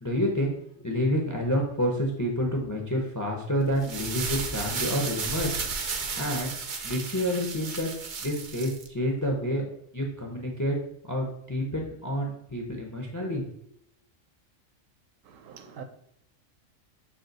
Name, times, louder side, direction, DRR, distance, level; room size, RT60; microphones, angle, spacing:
voice 1, 0.0-5.6 6.2-6.5 6.8-7.9 8.2-9.7 9.9-10.8 11.0-13.4, equal, 25° left, 0.4 m, -28 dB
sound 1, 3.7-8.9, right 5 dB, 60° right, 0.5 m, -33 dB
voice 2, 15.2-15.8, right 7 dB, 80° right, 1.0 m, -44 dB
5.8 x 2.3 x 3.9 m
omnidirectional pair, 1.4 m